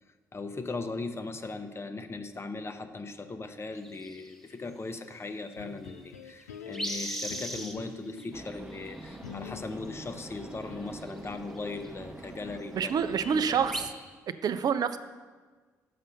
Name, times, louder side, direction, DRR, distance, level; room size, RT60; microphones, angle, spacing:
voice 1, 0.3-13.6, left 3 dB, 30° left, 9 dB, 0.8 m, -38 dB
sound 1, 3.8-4.4 5.5-5.6 5.9-6.0 6.2-7.8 8.2-9.3 10.3-10.6 10.9-11.9 12.2-12.3 12.5-12.9 13.2-13.8, equal, 5° left, 1.1 m, -38 dB
sound 2, 5.6-8.4 9.2-11.2, left 8 dB, 90° left, 0.3 m, -47 dB
sound 3, 8.3-13.9, right 2 dB, 15° right, 0.9 m, -45 dB
voice 2, 12.7-13.9 14.3-15.0, right 7 dB, 50° right, 11 dB, 0.4 m, -27 dB
6.7 x 5.5 x 6.9 m, 1.4 s
hypercardioid pair, 45°, 8 cm